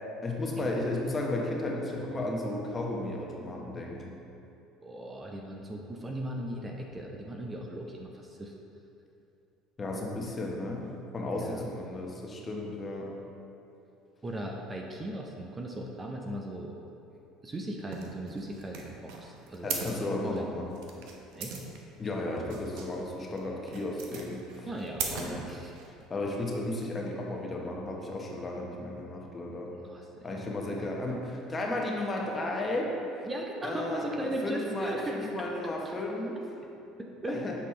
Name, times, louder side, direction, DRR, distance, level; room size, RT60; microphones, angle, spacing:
voice 1, 0.2-4.2 9.8-10.8 11.1-13.1 19.6-20.8 22.0-24.7 25.1-25.6 26.1-29.7 30.2-32.9 33.6-36.4 37.3-37.5, left 2 dB, 30° left, -1 dB, 1.0 m, -34 dB
voice 2, 4.8-8.5 11.4-11.7 14.2-16.7 17.4-19.9 20.2-20.6 21.4-21.6 24.7-25.7 29.8-30.3 30.7-30.9 33.2-35.5 35.8-35.9 37.0-37.4, right 1 dB, 25° right, 1 dB, 0.6 m, -38 dB
sound 1, 17.9-26.1, right 5 dB, 75° right, 0.7 m, -40 dB
7.1 x 4.1 x 3.2 m, 2.8 s
supercardioid pair, 85°, 0 cm